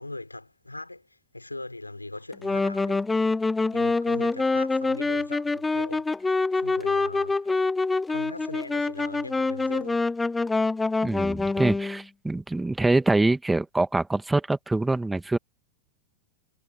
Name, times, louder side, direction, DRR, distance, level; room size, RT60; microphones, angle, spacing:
voice 1, 0.0-3.2 3.7-7.6 8.1-10.1, left 2 dB, 85° left, 3.7 m, -40 dB
Wind instrument woodwind instrument, 2.3-12.0, left 3 dB, 10° left, 1.4 m, -26 dB
voice 2, 11.0-15.4, right 2 dB, 5° right, 2.3 m, -24 dB
figure-of-eight pair, 90°, 0 cm